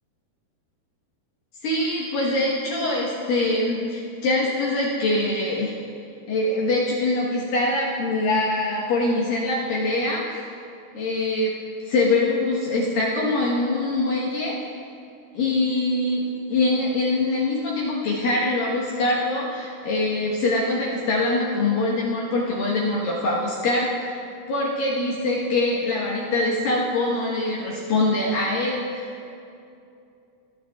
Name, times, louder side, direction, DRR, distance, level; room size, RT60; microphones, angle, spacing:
voice 1, 1.6-5.7 6.3-10.4 10.9-11.5 11.9-14.7 15.3-24.2 24.5-29.1, left 2 dB, 65° left, -5 dB, 2.7 m, -23 dB
29.5 x 9.9 x 2.3 m, 2.5 s
omnidirectional pair, 4.8 m